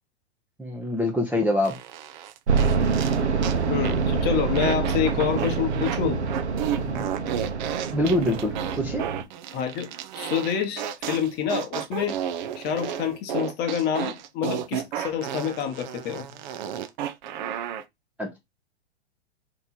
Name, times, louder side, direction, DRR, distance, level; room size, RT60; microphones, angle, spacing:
voice 1, 0.6-1.8 6.9-7.1 7.9-9.1 18.2-18.4, left 1 dB, 5° right, 0.6 m, -25 dB
sound 1, 1.6-3.6 3.8-4.1 4.5-6.0 6.3-17.8, right 10 dB, 45° right, 0.5 m, -33 dB
sound 2, 2.5-9.2, right 5 dB, 80° right, 0.9 m, -26 dB
voice 2, 3.7-6.2 9.5-9.9 10.1-12.2 12.6-16.3, left 8 dB, 30° left, 1.0 m, -27 dB
3.3 x 3.0 x 4.1 m
hypercardioid pair, 110°, 33 cm